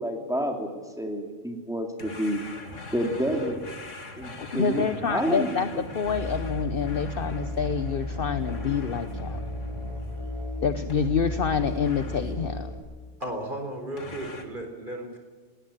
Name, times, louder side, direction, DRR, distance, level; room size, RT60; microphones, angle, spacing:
voice 1, 0.0-2.5 2.9-3.6 4.2-5.6, equal, 5° right, 3 dB, 3.0 m, -29 dB
sound 1, 2.0-10.5 10.9-12.6 14.0-14.4, left 2 dB, 85° left, 2.5 m, -41 dB
voice 2, 4.4-5.7 5.9-9.4 10.6-12.7 15.0-15.1, left 6 dB, 50° left, 10 dB, 1.0 m, -27 dB
Musical instrument, 6.1-12.8, left 1 dB, 25° left, 4.7 m, -34 dB
voice 3, 13.2-15.2, right 1 dB, 40° right, 4 dB, 4.2 m, -34 dB
19.5 x 18.5 x 8.9 m, 1.5 s
omnidirectional pair, 1.3 m